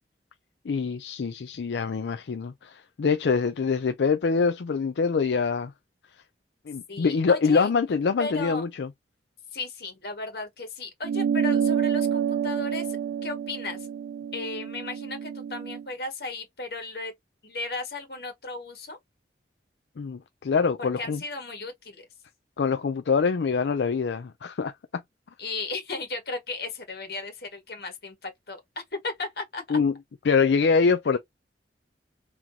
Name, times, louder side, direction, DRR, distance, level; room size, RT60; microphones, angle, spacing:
voice 1, 0.7-5.7 6.7-8.9 20.0-21.2 22.6-25.0 29.7-29.9 30.3-31.2, left 5 dB, 80° left, 0.4 m, -24 dB
voice 2, 6.9-7.7 8.2-8.7 9.5-13.9 14.3-17.1 17.4-19.0 21.0-22.1 25.4-28.6 29.0-29.8, left 3 dB, 60° left, 1.7 m, -35 dB
sound 1, 11.0-15.8, right 7 dB, 90° right, 0.4 m, -28 dB
3.8 x 2.9 x 2.8 m
head